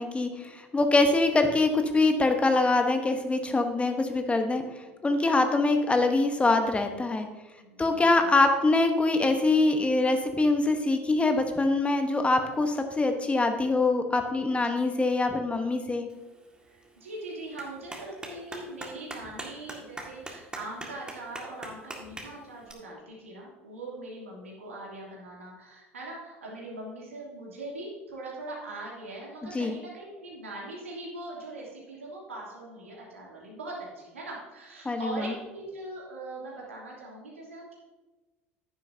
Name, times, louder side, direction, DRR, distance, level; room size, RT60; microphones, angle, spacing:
voice 1, 0.0-4.6 5.0-7.3 7.8-16.1 29.5-29.7 34.8-35.3, left 2 dB, 15° left, 6 dB, 1.1 m, -24 dB
voice 2, 7.6-8.2 14.7-14.9 16.7-37.7, right 2 dB, 80° right, -4 dB, 2.8 m, -41 dB
Clapping, 16.1-22.7, right 1 dB, 10° right, 1.9 m, -44 dB
11.0 x 10.0 x 2.8 m, 1.2 s
figure-of-eight pair, 65°, 7 cm